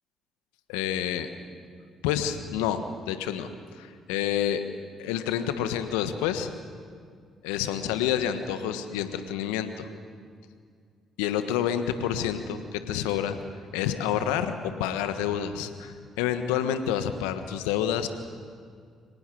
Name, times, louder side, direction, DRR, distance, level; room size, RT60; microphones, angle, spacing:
voice 1, 0.7-1.3 2.0-4.6 5.0-6.5 7.4-9.9 11.2-13.4 13.7-14.5 14.8-18.1, left 9 dB, 80° left, 9 dB, 1.4 m, -28 dB
25.0 x 19.0 x 7.8 m, 2.1 s
hypercardioid pair, 45°, 0 cm